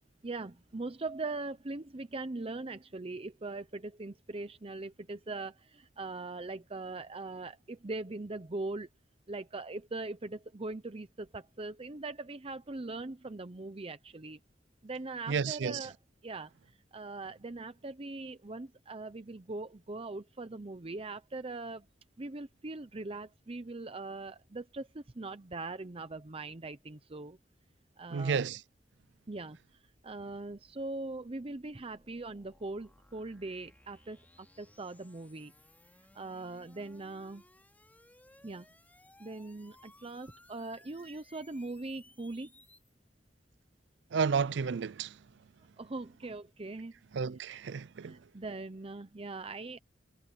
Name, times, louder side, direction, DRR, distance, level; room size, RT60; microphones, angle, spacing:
voice 1, 0.2-8.9 9.3-14.4 14.8-15.9 16.2-16.5 16.9-21.9 22.2-27.4 28.0-28.4 29.3-29.6 30.0-35.5 36.1-37.4 38.4-38.7 39.2-42.5 45.8-46.9 47.5-47.6 48.0-49.8, right 2 dB, 30° right, 0.7 m, -41 dB
voice 2, 15.3-15.9 28.1-28.6 44.1-45.2 47.1-48.2, right 6 dB, 70° right, 0.4 m, -31 dB
sound 1, 29.7-42.9, left 1 dB, 10° left, 5.6 m, -62 dB
head